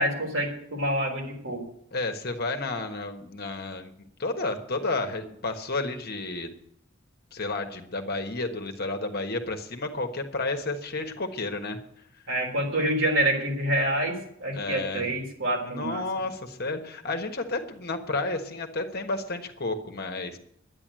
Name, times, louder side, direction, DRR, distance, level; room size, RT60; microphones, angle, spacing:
voice 1, 0.0-1.6 12.3-16.0, right 1 dB, 65° right, 1 dB, 3.7 m, -27 dB
voice 2, 1.9-3.9 4.2-6.5 7.3-11.8 14.5-15.1 15.6-20.4, left 2 dB, 50° left, 6 dB, 1.4 m, -31 dB
11.0 x 9.9 x 7.6 m, 0.74 s
head